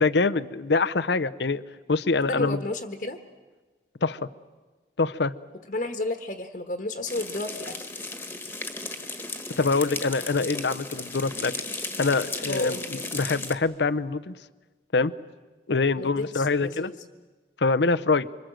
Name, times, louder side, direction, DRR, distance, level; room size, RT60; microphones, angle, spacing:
voice 1, 0.0-1.6 1.9-2.6 4.0-4.2 5.0-5.3 9.6-11.5 12.0-14.3 14.9-15.1 15.7-16.9 17.6-18.3, left 3 dB, 80° left, 13 dB, 0.7 m, -24 dB
voice 2, 2.2-3.2 5.7-7.9 12.5-13.1 16.0-17.0, left 2 dB, 50° left, 5 dB, 1.4 m, -32 dB
sound 1, 7.1-13.5, left 3 dB, 10° left, 1.5 m, -35 dB
26.5 x 25.5 x 7.7 m, 1.3 s
head